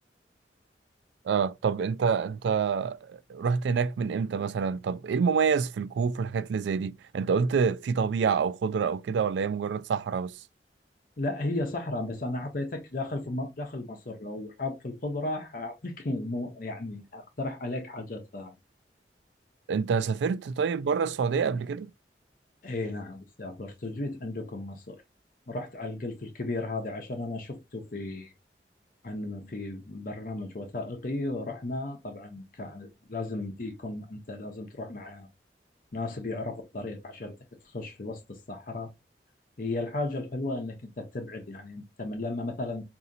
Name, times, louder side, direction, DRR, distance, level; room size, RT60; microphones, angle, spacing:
voice 1, 1.2-10.4 19.7-21.9, right 6 dB, 90° right, 0.3 m, -27 dB
voice 2, 11.2-18.5 22.6-25.0 25.5-28.3 29.0-35.3 35.9-37.3 37.6-38.9 39.6-42.8, left 2 dB, 50° left, 0.7 m, -35 dB
4.9 x 2.7 x 2.6 m
head